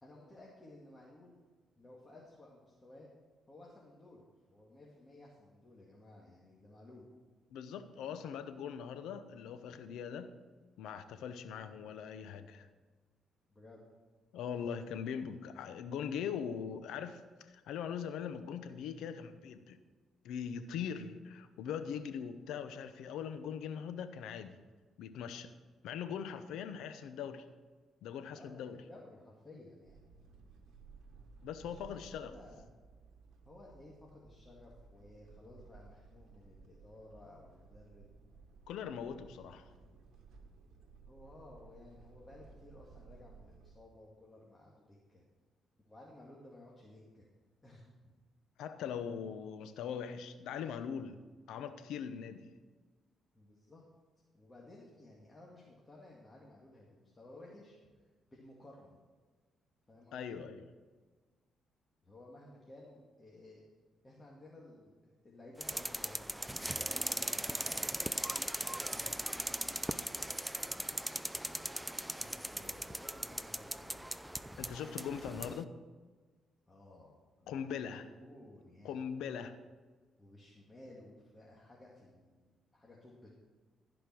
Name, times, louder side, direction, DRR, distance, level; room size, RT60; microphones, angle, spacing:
voice 1, 0.0-1.4 1.8-3.1 3.5-7.1 13.5-13.8 28.3-30.0 31.6-32.7 33.4-38.1 41.1-45.2 45.8-47.2 47.6-48.1 53.3-53.8 54.3-57.8 58.3-59.0 59.9-60.4 62.0-63.6 64.0-67.7 68.6-69.3 71.3-71.4 72.2-74.6 76.7-79.0 80.2-83.3, left 2 dB, 20° left, -4 dB, 2.1 m, -56 dB
voice 2, 7.5-10.3 10.8-12.7 14.3-17.2 17.5-19.8 20.2-24.6 25.0-25.5 25.8-27.5 28.0-28.8 31.4-32.3 38.7-39.7 48.6-51.2 51.5-52.5 60.1-60.6 70.8-71.1 74.6-75.7 77.5-78.1 78.8-79.6, left 7 dB, 85° left, 10 dB, 0.8 m, -41 dB
sound 1, 29.9-43.7, right 4 dB, 75° right, 1.3 m, -58 dB
sound 2, 65.6-75.6, right 1 dB, 5° right, 0.4 m, -39 dB
15.0 x 5.1 x 6.2 m, 1.4 s
cardioid pair, 90°, 0 cm